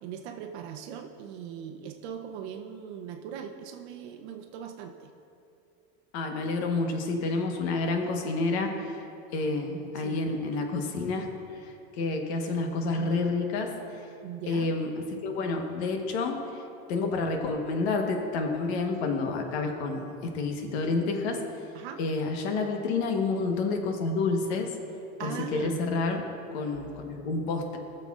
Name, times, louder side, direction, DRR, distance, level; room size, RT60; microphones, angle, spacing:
voice 1, 0.0-4.9 9.5-9.6 9.9-10.2 14.2-14.7 21.7-22.0 25.2-25.8, right 8 dB, 85° right, 3 dB, 0.7 m, -39 dB
voice 2, 6.1-9.0 9.3-11.3 11.6-13.7 14.5-14.9 15.2-16.4 16.9-21.4 22.0-24.7 25.2-26.2 26.5-27.8, left 3 dB, 80° left, 3 dB, 1.2 m, -29 dB
19.5 x 6.7 x 2.4 m, 2.7 s
cardioid pair, 180°, 32 cm